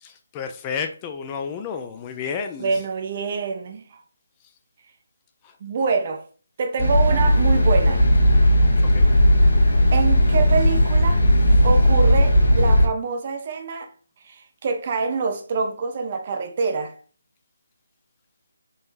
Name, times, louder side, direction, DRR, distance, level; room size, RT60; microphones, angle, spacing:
voice 1, 0.0-2.7 8.9-9.1, left 6 dB, 20° left, 0.3 m, -31 dB
voice 2, 2.6-4.0 5.6-6.3 6.6-8.0 9.9-11.2 11.6-13.9 14.2-17.0, right 4 dB, 35° right, 0.6 m, -25 dB
sound 1, 6.8-12.9, equal, 60° left, 1.0 m, -16 dB
3.8 x 3.0 x 2.5 m
figure-of-eight pair, 150°, 0 cm